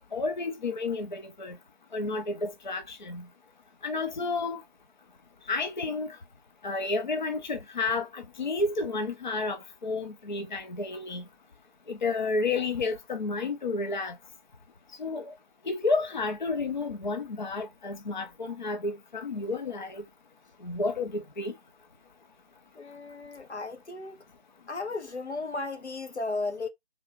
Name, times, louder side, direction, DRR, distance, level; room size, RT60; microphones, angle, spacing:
voice 1, 0.1-1.6 1.9-3.3 3.8-4.6 5.5-6.2 6.6-11.2 11.9-14.2 15.0-15.3 15.7-20.0 20.6-21.5, left 3 dB, 45° left, 0.6 m, -31 dB
voice 2, 22.7-24.2 24.7-26.7, left 3 dB, 80° left, 0.9 m, -35 dB
3.4 x 2.4 x 3.5 m
figure-of-eight pair, 155°, 33 cm